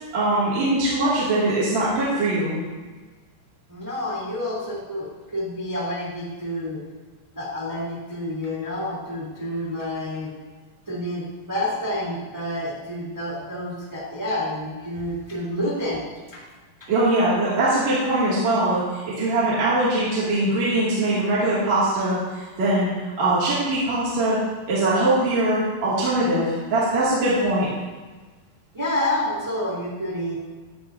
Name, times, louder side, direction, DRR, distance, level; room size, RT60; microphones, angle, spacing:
voice 1, 0.1-2.6 16.9-24.4 24.7-27.7, right 2 dB, 45° right, -9 dB, 3.2 m, -22 dB
voice 2, 3.7-6.8 7.3-10.3 10.9-16.4 28.7-30.3, left 1 dB, 5° right, -5 dB, 2.2 m, -29 dB
14.5 x 10.0 x 2.7 m, 1.3 s
omnidirectional pair, 5.0 m